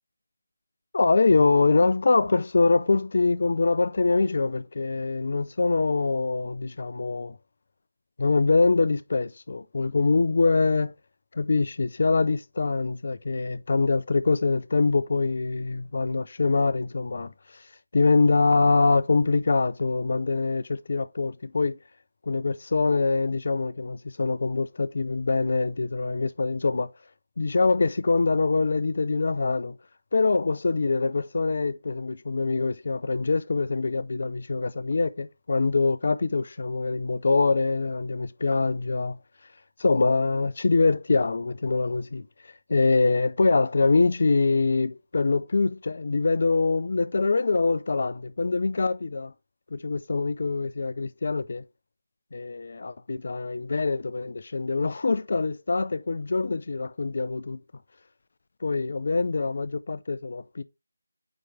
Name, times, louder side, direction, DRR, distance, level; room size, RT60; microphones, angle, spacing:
voice 1, 0.9-7.4 8.2-10.9 11.3-17.6 17.9-21.8 22.3-26.9 27.4-29.8 30.1-39.2 39.8-42.3 42.7-49.3 49.7-51.6 52.3-57.6 58.6-60.6, left 3 dB, 55° left, 0.6 m, -24 dB
8.8 x 3.1 x 3.8 m
figure-of-eight pair, 160°, 0 cm